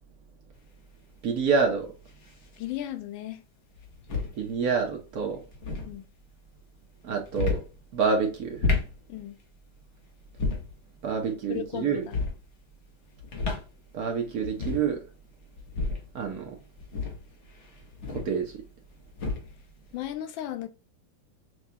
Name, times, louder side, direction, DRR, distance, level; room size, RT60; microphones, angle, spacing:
sound 1, 0.5-0.6 2.1-2.5 3.7-4.4 5.4-5.9 7.2-7.7 8.4-9.0 10.3-10.8 12.0-12.4 13.2-13.7 14.0-14.1 14.4-14.9 15.6-16.1 16.8-18.4 19.1-19.6, left 4 dB, 45° left, 1.0 m, -31 dB
voice 1, 1.2-1.9 4.3-5.4 7.0-7.6 7.9-8.6 11.0-12.0 13.9-15.0 16.1-16.6 18.1-18.5, right 5 dB, 60° right, 1.1 m, -27 dB
voice 2, 2.6-3.4 5.9-6.0 9.1-9.4 11.5-12.2 19.9-20.7, left 12 dB, 85° left, 1.3 m, -35 dB
6.0 x 2.3 x 2.7 m
omnidirectional pair, 2.1 m